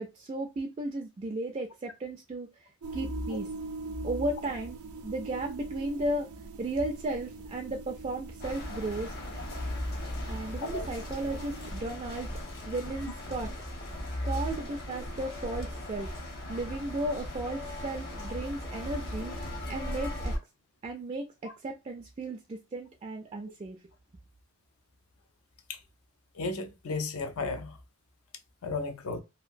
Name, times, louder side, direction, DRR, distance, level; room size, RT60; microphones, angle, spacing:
voice 1, 0.0-2.5 2.9-3.5 4.0-4.8 5.0-6.3 6.6-9.1 10.3-13.5 14.2-16.1 16.5-19.3 19.7-20.3 20.8-23.8, right 2 dB, 30° right, 0.3 m, -35 dB
sound 1, 2.8-11.7, right 3 dB, 90° right, 0.5 m, -43 dB
sound 2, 8.4-20.4, left 1 dB, 45° left, 0.8 m, -38 dB
voice 2, 26.3-27.8 28.6-29.2, left 3 dB, 75° left, 0.5 m, -34 dB
2.8 x 2.5 x 2.5 m
head